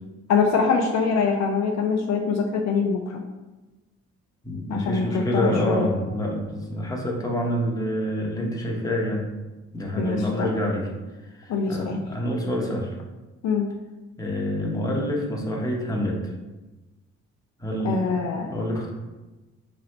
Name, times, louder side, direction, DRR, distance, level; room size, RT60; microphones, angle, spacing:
voice 1, 0.3-3.2 4.7-5.9 10.0-10.5 11.5-12.0 13.4-13.7 17.8-18.5, left 5 dB, 65° left, 2 dB, 0.5 m, -24 dB
voice 2, 4.4-9.3 9.7-10.9 11.2-12.9 14.2-16.3 17.6-18.9, equal, 10° left, -2 dB, 0.9 m, -27 dB
3.1 x 2.7 x 4.1 m, 1.1 s
cardioid pair, 90°, 30 cm